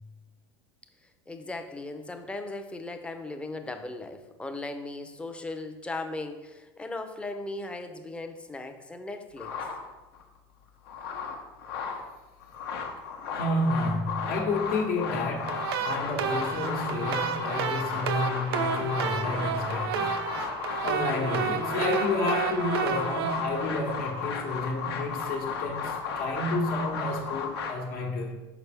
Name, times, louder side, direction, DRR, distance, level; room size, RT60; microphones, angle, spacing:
voice 1, 1.3-9.6, left 2 dB, 10° left, 7 dB, 0.5 m, -37 dB
sound 1, 9.4-10.2 10.7-12.1 12.4-27.7, left 5 dB, 90° left, 1.0 m, -34 dB
voice 2, 13.3-20.3 20.8-28.4, left 2 dB, 60° left, -5 dB, 1.1 m, -30 dB
sound 2, 15.5-24.6, right 7 dB, 85° right, 0.5 m, -31 dB
5.9 x 5.0 x 3.4 m, 1.1 s
supercardioid pair, 120°, 13 cm